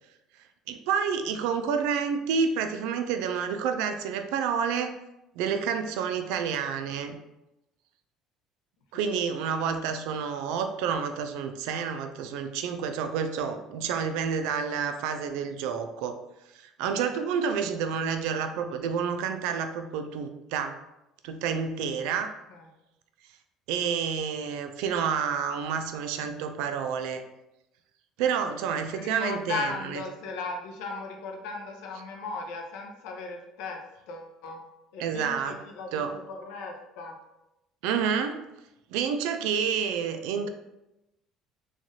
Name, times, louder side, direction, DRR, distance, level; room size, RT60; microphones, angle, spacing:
voice 1, 0.7-5.0 5.4-7.2 8.9-16.2 16.5-20.8 21.2-22.3 23.7-27.2 28.2-29.6 35.0-35.5 35.9-36.1 37.8-38.4 38.9-40.5, right 6 dB, 85° right, 7 dB, 0.3 m, -29 dB
voice 2, 28.9-34.6 34.9-37.2, left 3 dB, 75° left, 2 dB, 0.5 m, -37 dB
3.0 x 2.4 x 2.6 m, 0.92 s
cardioid pair, 175°, 0 cm